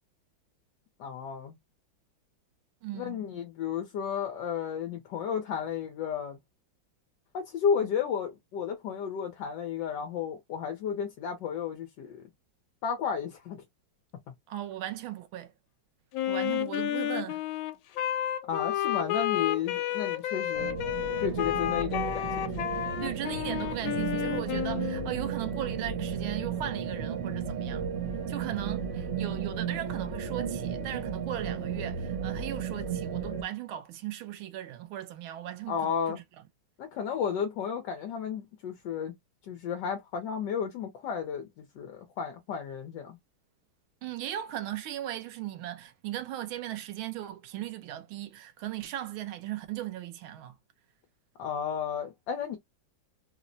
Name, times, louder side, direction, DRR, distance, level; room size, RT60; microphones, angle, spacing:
voice 1, 1.0-1.6 2.9-6.4 7.3-12.3 12.8-13.6 18.5-20.8 21.2-22.5 35.7-36.2 36.8-39.1 39.5-43.2 51.4-52.6, left 7 dB, 70° left, 1.3 m, -33 dB
voice 2, 2.8-3.3 14.5-15.5 16.3-17.4 23.0-27.8 28.3-36.2 44.0-50.6, right 12 dB, 90° right, 1.5 m, -37 dB
Wind instrument woodwind instrument, 16.1-25.1, left 12 dB, 90° left, 1.4 m, -31 dB
sound 1, 20.5-33.4, right 7 dB, 70° right, 0.7 m, -34 dB
4.2 x 2.0 x 2.6 m
omnidirectional pair, 2.2 m